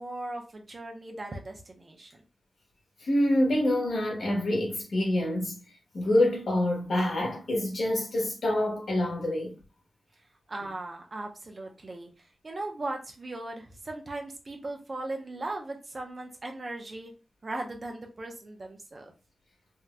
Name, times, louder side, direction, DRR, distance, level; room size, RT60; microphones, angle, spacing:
voice 1, 0.0-2.2 10.5-12.1 12.4-17.1 17.4-19.1, right 2 dB, 45° right, 0.8 m, -38 dB
voice 2, 3.0-5.6 5.9-9.5, left 1 dB, 70° left, 1.4 m, -26 dB
3.6 x 2.7 x 2.2 m
cardioid pair, 70°, 0 cm